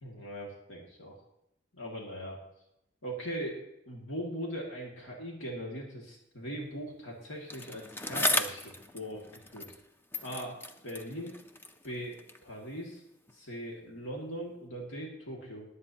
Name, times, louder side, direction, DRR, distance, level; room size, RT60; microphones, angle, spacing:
voice 1, 0.0-1.2 1.7-2.4 3.0-3.6 3.9-9.2 9.5-9.7 10.2-10.6 10.8-11.4 11.8-13.0 13.3-15.7, equal, 85° left, -2 dB, 2.2 m, -40 dB
Bicycle, 7.5-9.9 10.1-12.5 13.3-13.4, left 1 dB, 10° left, 0.5 m, -35 dB
21.0 x 8.1 x 2.9 m, 0.83 s
head